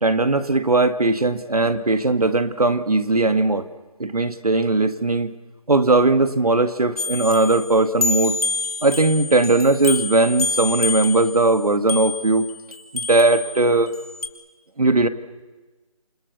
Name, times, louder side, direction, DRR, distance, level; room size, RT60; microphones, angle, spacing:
voice 1, 0.0-3.7 4.0-5.3 5.7-8.3 8.8-12.5 12.9-13.9 14.8-15.1, right 2 dB, 85° right, 11 dB, 2.0 m, -19 dB
sound 1, 7.0-14.3, left 3 dB, 80° left, 2.8 m, -28 dB
28.5 x 23.0 x 6.9 m, 1.2 s
figure-of-eight pair, 160°, 19 cm